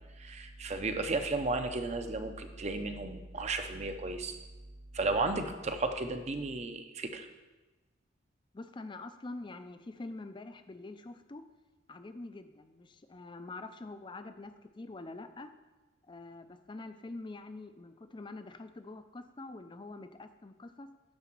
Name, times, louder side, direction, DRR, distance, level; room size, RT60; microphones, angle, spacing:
voice 1, 0.2-4.4 4.9-7.3, right 3 dB, 35° right, 7 dB, 0.6 m, -34 dB
voice 2, 8.5-11.4 11.9-15.5 16.0-20.9, left 2 dB, 25° left, 10 dB, 0.4 m, -45 dB
9.7 x 4.1 x 6.0 m, 1.2 s
head